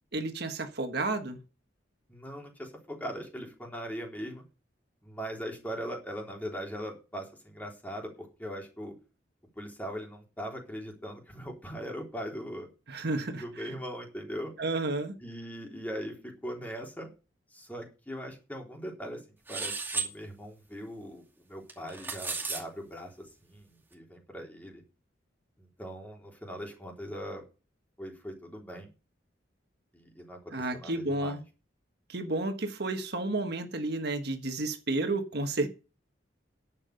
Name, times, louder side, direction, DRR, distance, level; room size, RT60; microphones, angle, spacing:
voice 1, 0.1-1.4 12.9-13.4 14.6-15.2 30.5-31.4 32.1-35.7, right 2 dB, 60° right, 1.5 m, -31 dB
voice 2, 2.1-4.4 5.0-8.9 9.6-12.7 13.4-14.5 15.2-17.1 17.5-19.2 19.5-24.8 25.6-27.4 28.0-28.9 29.9-31.4, equal, 10° left, 3.6 m, -40 dB
sound 1, 19.5-20.1 21.7-22.6, right 4 dB, 10° right, 2.4 m, -33 dB
11.0 x 7.6 x 6.5 m
head